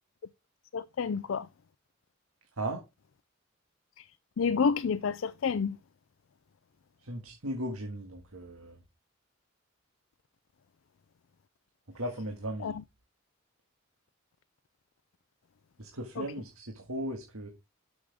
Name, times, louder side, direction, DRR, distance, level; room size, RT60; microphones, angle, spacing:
voice 1, 0.7-1.5 4.0-4.1 4.4-5.8 12.6-12.8 16.2-16.3, left 5 dB, 65° left, 0.4 m, -29 dB
voice 2, 7.0-8.8 11.9-12.8 15.8-17.5, right 1 dB, 85° right, 1.8 m, -37 dB
12.0 x 6.3 x 3.5 m
head